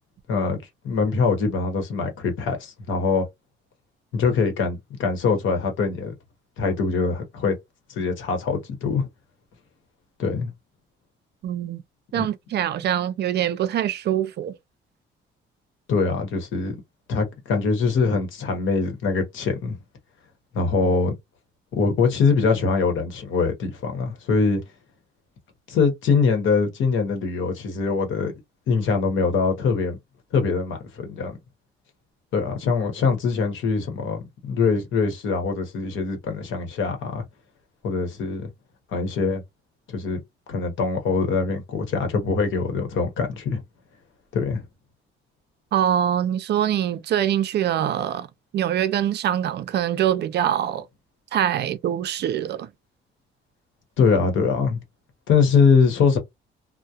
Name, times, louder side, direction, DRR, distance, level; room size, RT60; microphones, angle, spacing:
voice 1, 0.3-0.6 0.8-3.2 4.1-6.1 6.6-7.6 7.9-9.1 10.2-10.5 12.2-12.3 15.9-16.8 17.1-19.8 20.5-21.1 21.7-24.6 25.7-28.3 28.7-30.0 30.3-31.4 32.3-37.2 37.8-38.5 38.9-39.4 39.9-40.2 40.5-43.6 44.3-44.6 54.0-54.8 55.3-56.2, left 4 dB, 75° left, 0.9 m, -23 dB
voice 2, 11.4-11.8 12.1-14.5 45.7-48.3 48.5-50.9 51.3-52.7, right 10 dB, 55° right, 0.4 m, -24 dB
2.3 x 2.1 x 2.7 m
cardioid pair, 90°, 20 cm